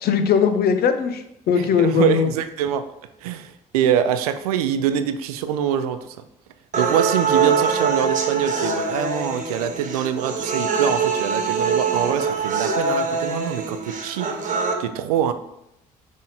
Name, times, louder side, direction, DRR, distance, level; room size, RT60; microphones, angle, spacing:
voice 1, 0.0-2.3, left 7 dB, 60° left, 8 dB, 0.8 m, -20 dB
voice 2, 1.5-2.8 3.2-6.2 6.8-14.3 14.8-15.3, right 9 dB, 90° right, 10 dB, 0.5 m, -24 dB
sound 1, 6.7-14.7, right 5 dB, 40° right, 1.2 m, -23 dB
6.2 x 3.7 x 4.2 m, 0.80 s
hypercardioid pair, 55°, 18 cm